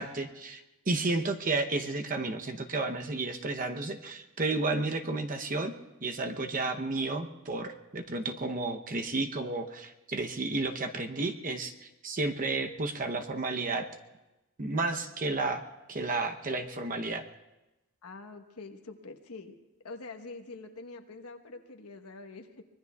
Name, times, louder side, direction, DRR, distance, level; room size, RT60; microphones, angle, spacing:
voice 1, 0.0-5.7 6.0-13.9 14.6-15.6 15.9-17.2, right 3 dB, 40° right, 6 dB, 0.8 m, -32 dB
voice 2, 18.0-19.6 19.8-22.6, left 3 dB, 75° left, 5 dB, 1.2 m, -45 dB
24.5 x 20.5 x 2.3 m, 1.0 s
head